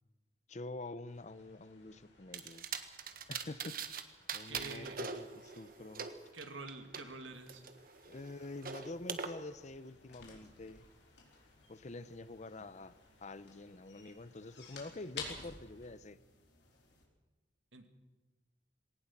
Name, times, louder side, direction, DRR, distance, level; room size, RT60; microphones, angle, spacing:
voice 1, 0.5-2.7 3.3-4.0 4.3-6.1 8.0-10.8 11.7-16.2, left 2 dB, 40° left, 15 dB, 0.7 m, -47 dB
sound 1, 1.1-15.9, left 2 dB, 85° left, 6.0 m, -68 dB
sound 2, 2.3-4.0 4.3-7.0 7.5-9.3, right 6 dB, 50° right, 1.4 m, -42 dB
voice 2, 4.5-5.0 6.3-7.6 17.7-17.9, right 3 dB, 85° right, 6 dB, 2.3 m, -47 dB
sound 3, 8.1-17.0, left 4 dB, 65° left, 4.6 m, -53 dB
20.0 x 18.0 x 7.4 m, 1.2 s
head